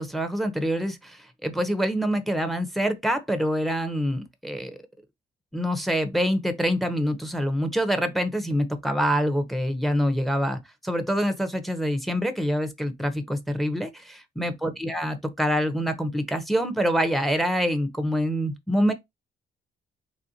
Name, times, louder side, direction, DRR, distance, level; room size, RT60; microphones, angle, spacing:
voice 1, 0.0-4.8 5.5-18.9, equal, ahead, 0.6 m, -26 dB
3.2 x 2.4 x 2.7 m
cardioid pair, 90°, 20 cm